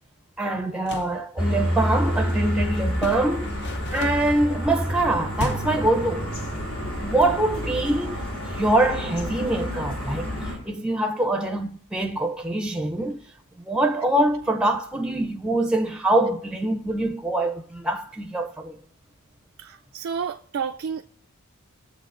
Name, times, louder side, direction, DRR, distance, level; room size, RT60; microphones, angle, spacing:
voice 1, 0.4-3.6 3.9-6.3 7.0-8.2 8.5-13.2 13.6-18.7, right 1 dB, 5° right, 0.5 m, -24 dB
sound 1, 0.7-1.2 2.9-4.4 5.3-5.9, left 2 dB, 50° left, 0.7 m, -34 dB
sound 2, 1.4-10.5, equal, 75° left, 2.7 m, -28 dB
voice 2, 19.6-21.0, right 6 dB, 65° right, 0.4 m, -30 dB
18.0 x 7.2 x 2.5 m
head